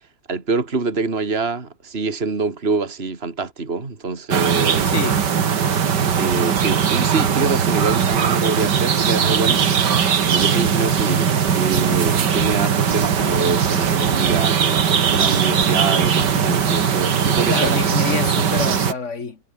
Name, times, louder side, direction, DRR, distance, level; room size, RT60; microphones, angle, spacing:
voice 1, 0.3-4.9 6.2-9.7 10.3-17.8, right 4 dB, 35° right, 2.9 m, -25 dB
sound 1, 4.3-18.9, right 7 dB, 75° right, 2.3 m, -19 dB
voice 2, 4.9-5.2 17.5-19.4, left 4 dB, 45° left, 2.4 m, -26 dB
omnidirectional pair, 1.9 m